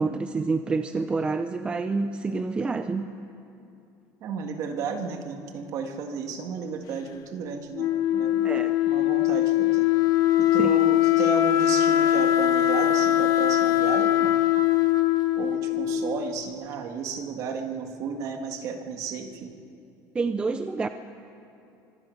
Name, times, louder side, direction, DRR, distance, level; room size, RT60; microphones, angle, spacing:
voice 1, 0.0-3.1 8.4-8.8 10.6-10.8 20.1-20.9, right 4 dB, 15° right, 9 dB, 0.5 m, -27 dB
voice 2, 4.2-8.5 8.9-9.9 10.4-14.3 15.4-19.5, right 6 dB, 45° right, 5 dB, 1.9 m, -33 dB
Wind instrument woodwind instrument, 7.7-16.5, left 13 dB, 50° left, 1.0 m, -22 dB
24.5 x 23.0 x 6.5 m, 2.7 s
cardioid pair, 175°, 8 cm